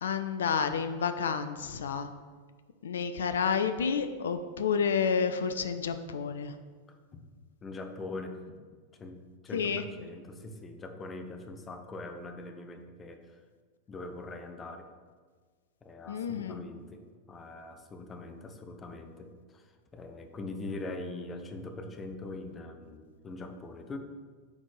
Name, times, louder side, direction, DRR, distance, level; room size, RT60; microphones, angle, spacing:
voice 1, 0.0-2.1 2.8-6.5 9.5-9.8 16.1-16.6, left 6 dB, 65° left, 10 dB, 0.3 m, -30 dB
voice 2, 6.9-7.2 7.6-8.6 8.9-13.4 13.9-14.9 15.8-24.0, left 2 dB, 20° left, 6 dB, 0.6 m, -42 dB
8.4 x 4.0 x 3.2 m, 1.5 s
figure-of-eight pair, 90°, 0 cm